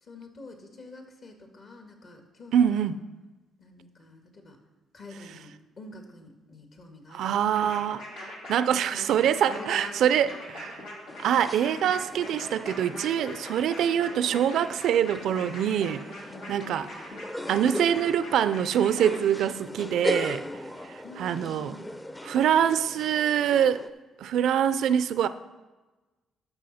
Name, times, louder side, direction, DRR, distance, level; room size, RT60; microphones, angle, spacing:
voice 1, 0.0-2.9 3.6-4.6 4.9-7.9 8.7-10.7 16.3-16.6 21.0-21.9, left 2 dB, 55° left, 3 dB, 1.8 m, -46 dB
voice 2, 2.5-2.9 7.1-10.7 11.2-16.0 16.5-17.1 17.5-20.4 20.9-21.7 22.2-23.8 24.2-25.3, right 9 dB, 75° right, 14 dB, 0.4 m, -25 dB
sound 1, 7.5-19.2, left 1 dB, 90° left, 2.5 m, -42 dB
sound 2, 11.1-23.9, left 1 dB, 15° left, 0.6 m, -38 dB
12.5 x 6.1 x 4.2 m, 1.2 s
cardioid pair, 90°, 0 cm